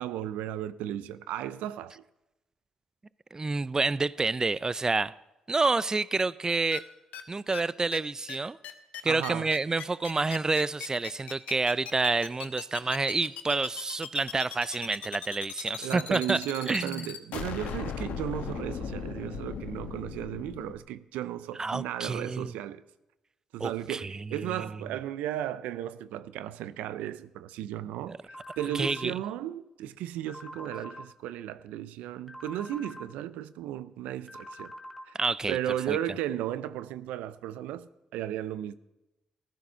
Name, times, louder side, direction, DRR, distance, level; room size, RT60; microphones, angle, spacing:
voice 1, 0.0-2.0 9.0-9.5 15.8-22.8 23.5-34.7 35.1-35.2 35.5-38.7, right 12 dB, 85° right, 0.5 m, -35 dB
voice 2, 3.3-5.1 5.5-6.9 7.3-8.6 9.0-16.4 16.7-17.1 21.6-22.5 23.6-24.2 28.1-28.2 28.7-29.1 35.2-35.6 35.9-36.0, right 3 dB, 25° right, 0.4 m, -28 dB
sound 1, 6.7-6.8 7.1-7.2 7.5-7.6 7.9-8.0 8.3-8.4 8.6-20.7, left 8 dB, 80° left, 1.1 m, -38 dB
sound 2, 28.3-29.0 30.3-31.0 32.3-33.0 34.3-35.0, equal, ahead, 1.6 m, -44 dB
14.0 x 12.0 x 5.6 m
supercardioid pair, 60°, 2 cm